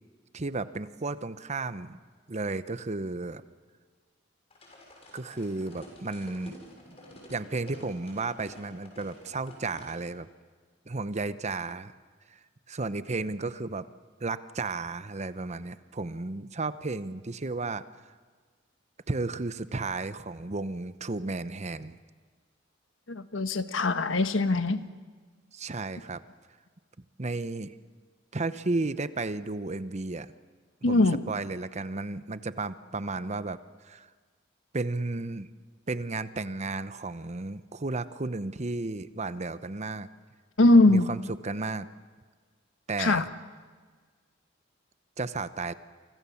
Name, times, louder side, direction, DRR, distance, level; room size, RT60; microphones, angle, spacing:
voice 1, 0.3-2.0 2.3-3.4 5.1-6.6 7.3-10.3 10.9-11.9 12.7-13.9 14.2-17.8 19.1-22.0 25.5-26.2 27.2-27.7 28.3-30.3 30.8-33.6 33.8-34.1 34.7-35.5 35.9-40.1 40.9-41.9 42.9-43.3 45.2-45.7, right 3 dB, 35° right, 13 dB, 0.9 m, -33 dB
sound 1, 4.5-10.0, equal, 30° left, 7.0 m, -50 dB
voice 2, 23.1-24.8 30.8-31.2 40.6-41.1 43.0-43.2, left 2 dB, 85° left, 10 dB, 1.3 m, -21 dB
29.0 x 24.5 x 7.2 m, 1.6 s
head